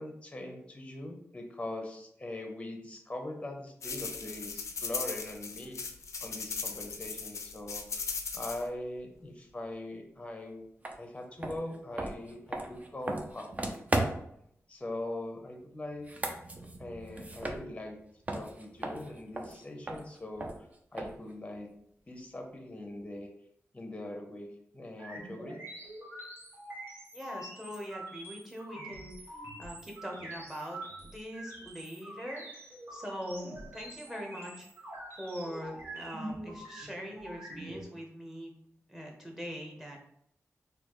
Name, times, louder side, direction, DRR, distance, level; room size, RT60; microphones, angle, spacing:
voice 1, 0.0-5.8 6.2-7.8 8.3-10.6 11.0-14.1 14.7-16.1 16.8-18.0 18.3-20.5 20.9-21.7 22.1-23.3 23.7-24.5 24.7-25.6, left 1 dB, 20° left, 3 dB, 0.7 m, -41 dB
sound 1, 3.8-8.6, left 5 dB, 75° left, 0.4 m, -38 dB
sound 2, 10.8-11.0 11.4-14.4 15.9-18.0 18.3-21.3, right 2 dB, 30° right, 0.5 m, -36 dB
sound 3, 25.0-37.8, right 1 dB, 50° right, 1.2 m, -45 dB
voice 2, 27.1-29.2 29.6-32.4 32.9-34.7 35.2-38.5 38.9-40.0, equal, 10° right, 0 dB, 1.0 m, -42 dB
4.3 x 2.6 x 3.0 m, 0.72 s
wide cardioid pair, 105°, 5 cm